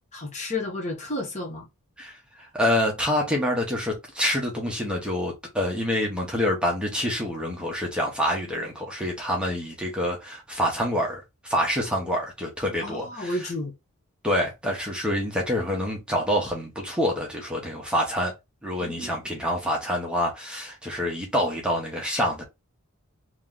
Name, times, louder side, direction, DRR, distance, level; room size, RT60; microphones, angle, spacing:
voice 1, 0.1-1.7 12.8-13.7 18.8-19.2, left 2 dB, 30° left, 0.9 m, -32 dB
voice 2, 2.0-13.5 14.2-18.3 18.6-22.4, equal, 5° right, 0.9 m, -27 dB
3.1 x 2.9 x 3.6 m
head